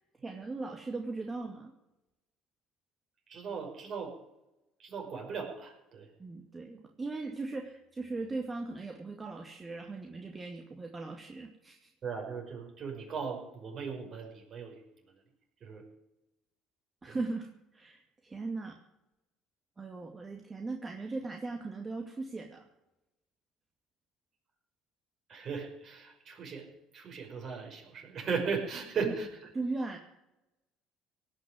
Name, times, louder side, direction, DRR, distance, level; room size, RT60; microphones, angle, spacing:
voice 1, 0.2-1.7 6.2-11.9 17.0-18.8 19.8-22.7 29.0-29.1 29.5-30.0, right 3 dB, 25° right, 2 dB, 2.2 m, -38 dB
voice 2, 3.3-4.1 4.8-6.1 12.0-14.8 15.6-15.8 17.1-17.2 25.3-26.7 26.9-29.5, right 5 dB, 50° right, 2 dB, 5.5 m, -37 dB
18.0 x 6.4 x 9.7 m, 0.92 s
hypercardioid pair, 60°, 0 cm